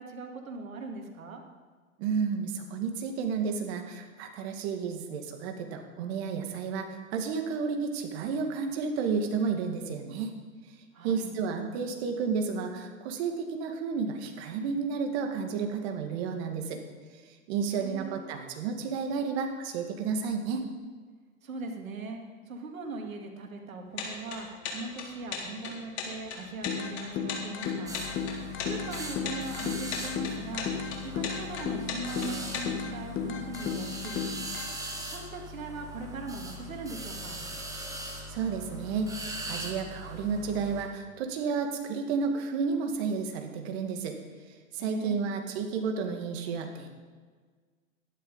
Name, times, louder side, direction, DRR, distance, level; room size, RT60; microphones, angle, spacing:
voice 1, 0.0-1.4 10.9-11.3 17.7-18.2 21.4-27.9 28.6-34.3 35.1-37.4 44.8-45.2, right 3 dB, 80° right, 3 dB, 2.4 m, -40 dB
voice 2, 2.0-10.4 11.0-16.8 17.1-17.2 17.5-20.6 38.3-44.2 44.7-46.9, right 5 dB, 50° right, 5 dB, 2.1 m, -31 dB
sound 1, 23.9-32.6, left 6 dB, 55° left, 3.9 m, -37 dB
sound 2, 26.7-34.7, left 6 dB, 30° left, 1.6 m, -35 dB
sound 3, 27.9-40.8, right 1 dB, 10° right, 2.1 m, -40 dB
12.0 x 11.0 x 5.5 m, 1.5 s
hypercardioid pair, 110°, 41 cm